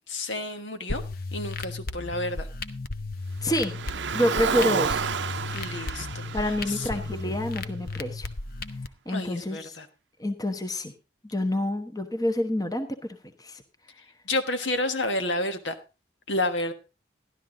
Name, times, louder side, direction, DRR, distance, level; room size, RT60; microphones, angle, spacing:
voice 1, 0.1-1.0 1.3-2.5 5.5-6.9 9.1-9.9 14.2-15.8 16.3-16.7, left 2 dB, 80° left, 7 dB, 1.4 m, -30 dB
sound 1, 0.9-8.9, left 3 dB, 50° left, 0.8 m, -35 dB
voice 2, 3.4-3.7 4.1-5.0 6.3-8.3 9.1-9.8 10.2-10.9 11.3-13.0 13.4-13.6, left 1 dB, 20° left, 7 dB, 1.0 m, -27 dB
Car, 3.5-7.9, right 6 dB, 75° right, 0.6 m, -31 dB
13.0 x 11.5 x 3.8 m, 0.30 s
head